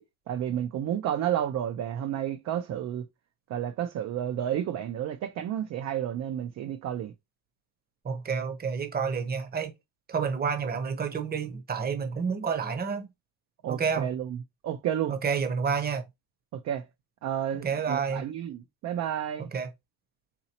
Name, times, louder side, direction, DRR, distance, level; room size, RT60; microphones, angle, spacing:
voice 1, 0.3-3.0 3.5-7.1 13.6-14.3 14.6-15.1 16.5-16.8 17.2-19.5, right 10 dB, 40° right, 0.4 m, -31 dB
voice 2, 8.0-9.7 10.1-13.1 13.7-14.1 15.1-16.0 17.6-18.2 19.5-19.7, right 6 dB, 20° right, 0.8 m, -29 dB
4.2 x 3.9 x 2.8 m
cardioid pair, 160°, 45 cm